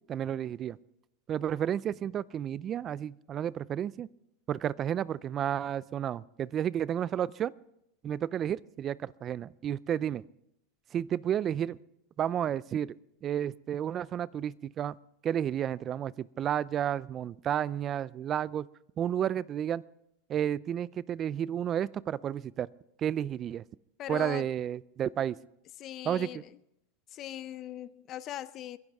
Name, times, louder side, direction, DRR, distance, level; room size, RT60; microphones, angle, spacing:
voice 1, 0.1-0.8 1.3-4.1 4.5-7.5 8.0-10.2 10.9-11.8 12.2-13.0 13.2-15.0 15.2-18.7 19.0-19.8 20.3-22.7 23.0-23.6 24.1-25.4 26.1-26.3, right 10 dB, 30° right, 0.4 m, -31 dB
voice 2, 24.0-24.5 25.8-26.5 27.1-28.8, left 12 dB, 40° left, 0.6 m, -40 dB
30.0 x 10.5 x 3.6 m
supercardioid pair, 125°, 0 cm